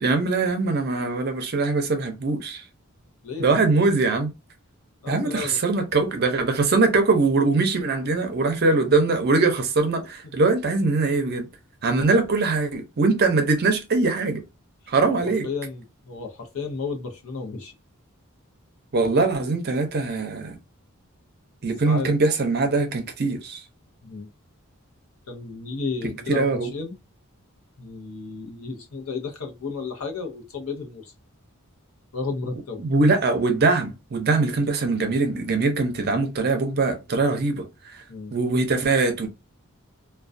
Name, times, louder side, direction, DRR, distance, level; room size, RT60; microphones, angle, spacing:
voice 1, 0.0-2.6 3.4-4.3 5.1-11.5 11.8-14.4 14.9-15.5 18.9-20.6 21.6-23.6 26.0-26.7 32.8-37.7 37.9-38.0 38.3-39.3, right 3 dB, 50° right, 0.5 m, -22 dB
voice 2, 3.2-3.6 5.0-5.6 15.1-17.7 21.9-22.1 24.0-24.3 25.3-27.0 27.8-31.1 32.1-32.8 38.1-38.3, left 4 dB, 70° left, 0.7 m, -33 dB
2.3 x 2.2 x 2.5 m
head